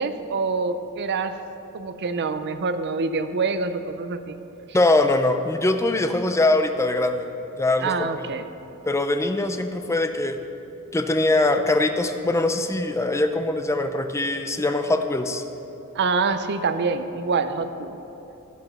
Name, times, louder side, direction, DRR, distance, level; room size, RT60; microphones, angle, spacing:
voice 1, 0.0-1.3 1.7-4.4 7.8-8.5 15.9-18.0, right 4 dB, 50° right, 10 dB, 0.5 m, -26 dB
voice 2, 4.7-7.3 7.6-8.1 8.9-10.4 10.9-15.4, left 2 dB, 15° left, 7 dB, 0.5 m, -22 dB
13.5 x 6.0 x 5.4 m, 3.0 s
head